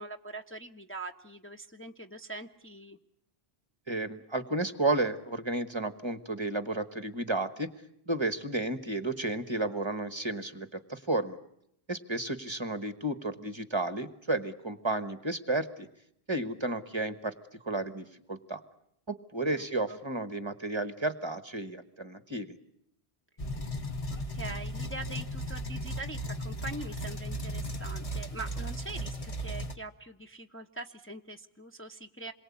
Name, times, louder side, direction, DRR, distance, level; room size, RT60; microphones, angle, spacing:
voice 1, 0.0-3.0 19.5-20.0 24.1-32.3, right 2 dB, 15° left, 3 dB, 1.0 m, -43 dB
voice 2, 3.9-7.7 8.1-11.4 11.9-15.9 16.3-17.3 17.6-18.6 19.1-22.5, right 2 dB, 25° right, 11 dB, 1.4 m, -32 dB
sound 1, 23.4-29.8, equal, 35° left, 1.3 m, -36 dB
27.5 x 22.5 x 8.6 m, 0.74 s
omnidirectional pair, 1.1 m